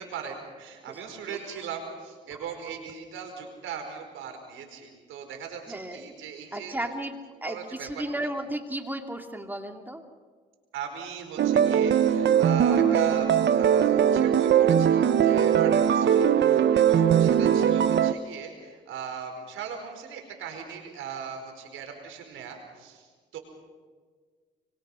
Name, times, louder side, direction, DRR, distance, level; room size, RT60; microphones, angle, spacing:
voice 1, 0.0-6.7 7.4-7.9 10.7-23.4, right 7 dB, 85° right, 4 dB, 4.9 m, -39 dB
voice 2, 5.7-6.1 6.5-10.0, right 1 dB, 10° right, 5 dB, 2.4 m, -34 dB
sound 1, 11.4-18.1, right 9 dB, 60° right, 1.0 m, -20 dB
25.0 x 23.5 x 5.7 m, 1.5 s
cardioid pair, 90°, 20 cm